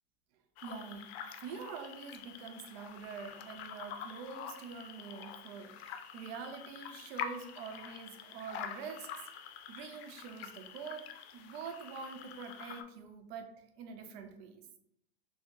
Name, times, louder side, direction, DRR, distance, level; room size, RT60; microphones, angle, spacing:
sound 1, 0.6-12.8, left 8 dB, 80° left, 0.5 m, -46 dB
voice 1, 0.6-1.1 1.4-9.1 9.7-14.6, right 6 dB, 70° right, 5 dB, 0.7 m, -45 dB
3.5 x 2.1 x 3.7 m, 0.76 s
supercardioid pair, 105°, 31 cm